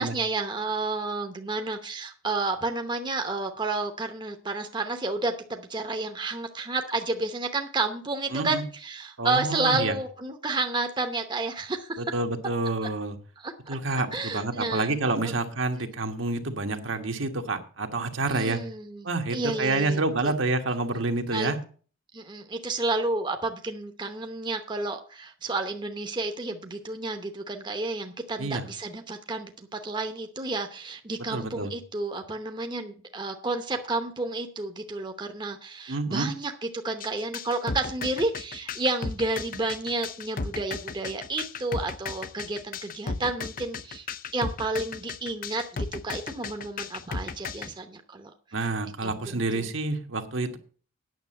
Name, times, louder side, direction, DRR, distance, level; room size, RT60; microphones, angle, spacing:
voice 1, 0.0-12.0 13.4-15.0 15.2-15.3 15.8-15.9 18.3-20.3 21.3-21.5 22.1-36.5 36.8-44.1 44.3-48.3 48.6-48.7 49.0-49.7, right 3 dB, 20° right, 5 dB, 0.9 m, -31 dB
voice 2, 8.3-8.6 9.2-9.9 12.0-13.2 13.7-18.6 19.0-21.6 28.4-28.6 31.3-31.7 35.9-36.3 48.5-50.6, right 2 dB, 65° right, 5 dB, 1.4 m, -28 dB
sound 1, 37.0-47.7, left 4 dB, 45° left, 0.6 m, -34 dB
9.3 x 6.8 x 7.7 m, 0.42 s
head